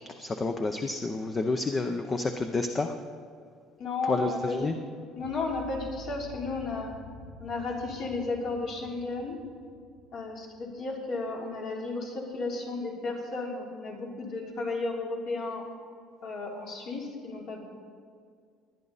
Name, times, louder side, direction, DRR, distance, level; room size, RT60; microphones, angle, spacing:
voice 1, 0.0-2.9 4.1-4.8, left 3 dB, 20° left, 6 dB, 0.6 m, -29 dB
voice 2, 3.8-4.7 5.2-6.9 7.4-9.4 10.1-15.7 16.2-17.6, left 3 dB, 55° left, -2 dB, 3.2 m, -33 dB
sound 1, 5.1-11.2, left 1 dB, 80° left, 1.9 m, -48 dB
20.0 x 10.5 x 4.1 m, 2.1 s
cardioid pair, 145°, 0 cm